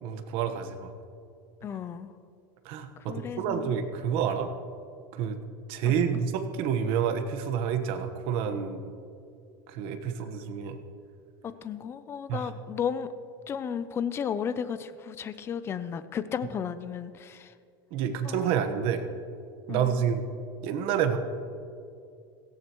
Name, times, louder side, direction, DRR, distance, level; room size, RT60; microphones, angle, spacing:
voice 1, 0.0-0.9 2.6-4.5 5.1-5.4 5.7-8.8 9.7-10.8 12.3-12.5 17.9-19.0 19.7-20.2 20.6-21.2, right 8 dB, 50° right, 7 dB, 1.3 m, -28 dB
voice 2, 1.6-2.1 3.1-3.8 5.8-6.2 11.4-13.1 13.5-17.5 18.2-18.5 19.7-20.0, left 7 dB, 20° left, 13 dB, 0.5 m, -34 dB
17.5 x 16.0 x 3.1 m, 2.5 s
supercardioid pair, 155°, 11 cm